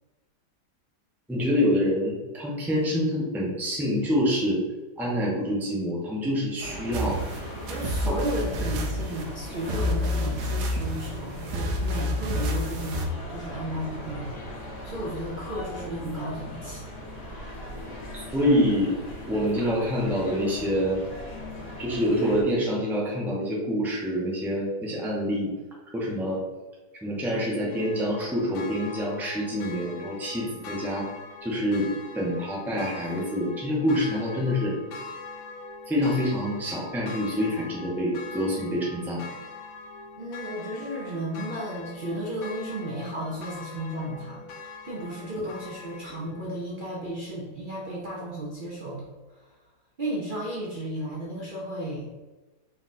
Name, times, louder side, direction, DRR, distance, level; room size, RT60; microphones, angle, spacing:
voice 1, 1.3-4.6 5.0-7.2 8.1-8.2 18.1-18.9 19.3-21.0 21.8-25.5 25.9-26.4 26.9-31.1 31.4-31.9 32.1-34.8 35.9-39.3, equal, ahead, -4 dB, 0.4 m, -26 dB
sound 1, 6.6-22.4, equal, 45° left, 1.0 m, -39 dB
sound 2, 6.9-13.1, left 1 dB, 75° right, 1.1 m, -29 dB
voice 2, 7.7-16.9 40.2-49.6 50.0-52.1, right 1 dB, 60° right, -5 dB, 0.5 m, -34 dB
sound 3, 27.7-46.5, left 3 dB, 70° left, 1.0 m, -42 dB
4.0 x 2.4 x 4.1 m, 1.2 s
omnidirectional pair, 1.8 m